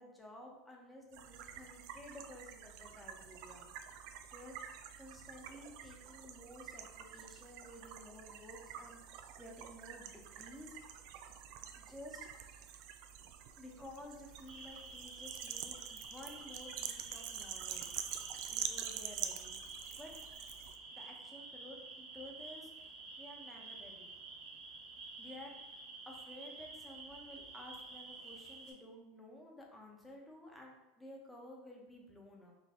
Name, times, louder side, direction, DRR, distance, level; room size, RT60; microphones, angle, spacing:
voice 1, 0.0-3.7 4.3-10.8 11.8-12.8 13.6-18.0 18.5-19.6 20.0-20.1 20.9-22.9 23.2-24.1 25.2-32.6, left 1 dB, 10° left, 0 dB, 1.0 m, -53 dB
sound 1, 1.1-20.8, right 9 dB, 65° right, 0.3 m, -47 dB
sound 2, 14.5-28.7, right 3 dB, 45° right, 1.3 m, -50 dB
4.2 x 2.5 x 3.7 m, 1.0 s
hypercardioid pair, 100°, 0 cm